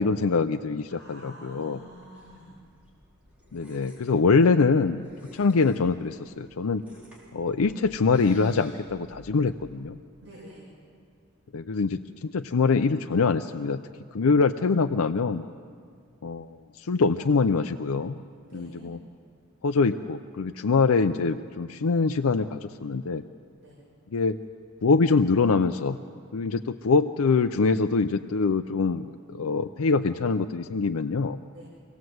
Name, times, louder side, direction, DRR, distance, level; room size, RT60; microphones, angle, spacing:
voice 1, 0.0-1.8 3.5-5.1 5.3-6.8 7.3-10.0 11.5-13.8 14.1-15.4 16.2-18.2 18.5-19.0 19.6-23.2 24.1-24.4 24.8-26.0 26.3-31.4, left 4 dB, 85° left, 8 dB, 0.5 m, -24 dB
voice 2, 0.9-2.5 10.2-10.6 18.4-18.9 23.6-23.7 31.5-31.6, equal, 55° right, -8 dB, 7.0 m, -47 dB
sound 1, 1.7-9.8, equal, 5° right, 4.8 m, -54 dB
25.5 x 17.5 x 7.9 m, 2.2 s
head